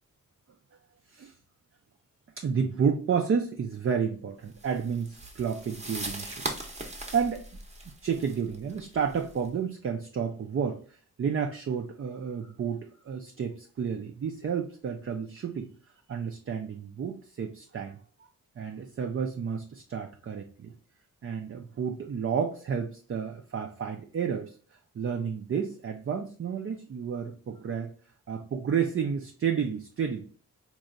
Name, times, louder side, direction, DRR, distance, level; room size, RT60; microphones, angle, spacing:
voice 1, 2.4-6.5 6.8-7.4 7.9-15.7 16.1-18.0 18.6-20.7 21.2-27.9 28.3-30.2, right 6 dB, 45° right, 4 dB, 0.4 m, -31 dB
sound 1, 4.6-9.5, right 1 dB, 20° right, 0.7 m, -40 dB
4.1 x 2.7 x 2.4 m, 0.39 s
wide cardioid pair, 85°, 33 cm